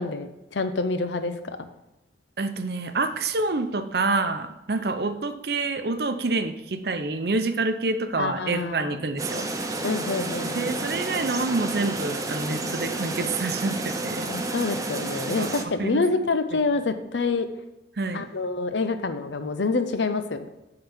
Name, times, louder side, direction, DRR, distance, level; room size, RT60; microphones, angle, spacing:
voice 1, 0.0-1.7 8.2-8.9 9.8-10.7 14.3-17.5 18.1-20.4, left 3 dB, 80° left, 9 dB, 0.7 m, -27 dB
voice 2, 2.4-9.5 10.5-14.3 15.4-15.5 15.8-16.0 16.5-16.6 18.0-18.3, right 3 dB, 60° right, 9 dB, 0.6 m, -27 dB
sound 1, 9.2-15.6, right 2 dB, 20° right, 0.6 m, -30 dB
9.0 x 3.9 x 7.0 m, 0.97 s
head